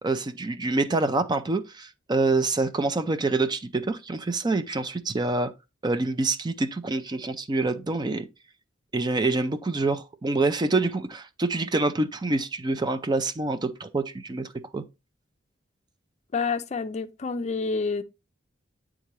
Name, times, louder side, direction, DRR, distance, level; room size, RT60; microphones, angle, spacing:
voice 1, 0.0-5.5 5.8-8.3 8.9-14.8, right 3 dB, 20° right, 0.4 m, -26 dB
voice 2, 16.3-18.0, left 4 dB, 35° left, 0.4 m, -28 dB
9.1 x 3.7 x 3.0 m
head